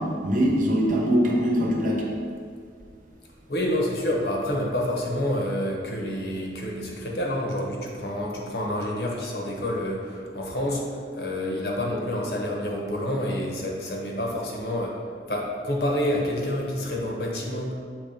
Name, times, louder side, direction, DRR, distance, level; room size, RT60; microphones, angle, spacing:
voice 1, 0.0-2.1, equal, 45° right, -2 dB, 1.0 m, -22 dB
voice 2, 3.5-10.8 11.1-15.0 15.3-17.8, left 1 dB, 60° left, -1 dB, 1.1 m, -28 dB
7.1 x 3.4 x 5.1 m, 2.1 s
head